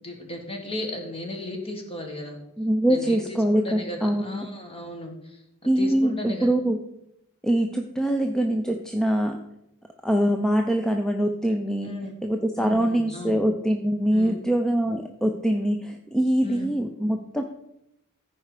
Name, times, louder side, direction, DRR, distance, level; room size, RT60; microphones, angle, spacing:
voice 1, 0.0-2.4 2.9-5.4 5.8-6.5 11.8-12.1 12.6-13.4 14.1-14.4 16.4-16.7, left 1 dB, 25° left, 3 dB, 1.7 m, -35 dB
voice 2, 2.6-4.4 5.7-6.8 7.4-9.4 10.0-11.9 12.2-17.4, right 1 dB, 5° left, 4 dB, 0.5 m, -23 dB
14.5 x 4.9 x 4.8 m, 0.84 s
head